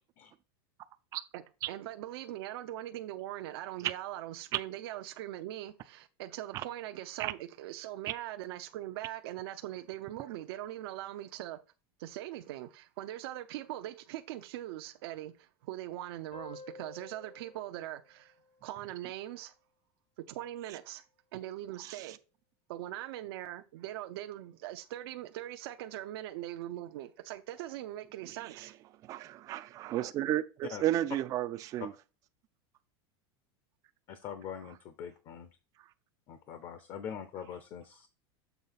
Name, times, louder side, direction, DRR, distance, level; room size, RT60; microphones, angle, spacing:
voice 1, 1.7-11.6 12.0-18.3 18.6-19.5 20.3-21.0 21.3-22.1 22.7-28.7, right 14 dB, 65° right, 0.6 m, -41 dB
sound 1, 16.3-19.5, left 4 dB, 85° left, 3.0 m, -53 dB
voice 2, 21.8-22.2 28.3-28.7 29.0-31.9 35.8-35.9, right 13 dB, 25° right, 0.4 m, -33 dB
voice 3, 34.1-35.5 36.3-38.1, left 8 dB, 35° left, 0.7 m, -43 dB
7.0 x 3.2 x 5.8 m
supercardioid pair, 165°, 13 cm